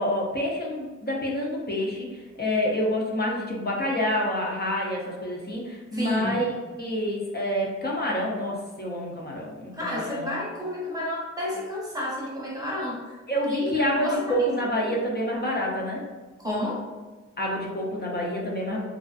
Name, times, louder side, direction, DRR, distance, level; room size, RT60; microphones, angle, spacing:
voice 1, 0.0-2.1 2.4-10.4 13.3-16.0 17.4-18.8, equal, 35° left, -2 dB, 0.5 m, -27 dB
voice 2, 5.9-6.4 9.7-13.2 13.5-14.5 14.8-14.9 16.4-16.8, left 1 dB, 10° right, -5 dB, 0.7 m, -31 dB
2.4 x 2.3 x 2.3 m, 1.3 s
wide cardioid pair, 105°, 29 cm